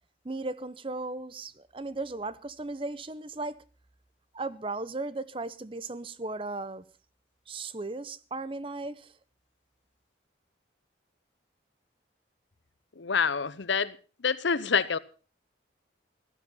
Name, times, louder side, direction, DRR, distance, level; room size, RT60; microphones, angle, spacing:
voice 1, 0.2-3.6 4.3-6.9 7.5-9.1, right 2 dB, 30° right, 0.7 m, -36 dB
voice 2, 13.0-14.0 14.2-15.0, left 6 dB, 75° left, 0.8 m, -27 dB
16.0 x 12.5 x 5.6 m
head